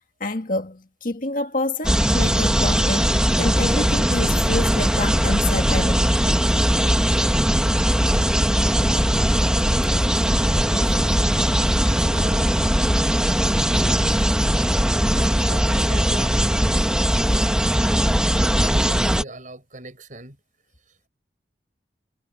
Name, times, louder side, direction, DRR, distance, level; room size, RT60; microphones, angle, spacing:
voice 1, 0.2-3.1 3.4-6.4, left 2 dB, 50° left, 2.0 m, -28 dB
sound 1, 1.8-19.2, equal, 5° right, 1.4 m, -20 dB
voice 2, 10.2-11.2 11.8-12.5 13.5-13.9 14.5-14.6 15.2-17.5 18.6-20.4, right 1 dB, 45° right, 7.3 m, -40 dB
head